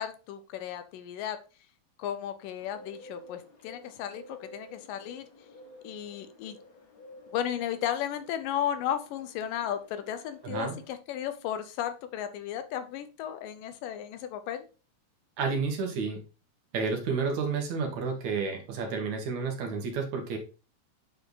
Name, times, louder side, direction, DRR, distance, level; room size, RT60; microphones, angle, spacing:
voice 1, 0.0-1.4 2.0-5.3 5.8-6.6 7.3-14.7, left 10 dB, 90° left, 10 dB, 2.5 m, -34 dB
Bird, 2.6-10.9, left 1 dB, 40° left, 1.4 m, -52 dB
voice 2, 10.4-10.8 15.4-16.2 16.7-20.4, right 5 dB, 65° right, 3 dB, 2.8 m, -30 dB
8.6 x 4.5 x 4.0 m, 0.34 s
omnidirectional pair, 3.7 m